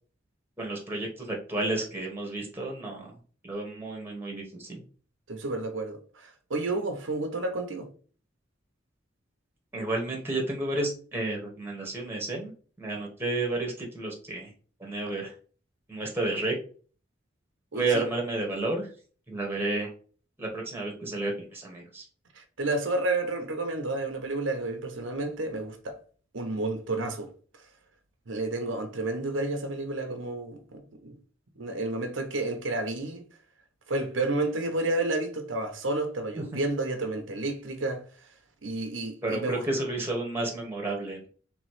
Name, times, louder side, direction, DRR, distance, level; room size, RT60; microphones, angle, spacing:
voice 1, 0.6-3.1 3.4-4.8 9.7-12.5 12.8-14.5 14.8-15.3 15.9-16.5 17.7-18.9 19.3-19.9 20.4-22.0 39.2-41.3, right 2 dB, 10° right, 1.3 m, -31 dB
voice 2, 5.3-7.9 17.7-18.1 22.3-26.0 26.3-27.7 28.3-31.2 31.6-33.2 33.9-38.3 38.6-39.7, right 2 dB, 85° right, 0.8 m, -31 dB
3.4 x 3.1 x 4.8 m
head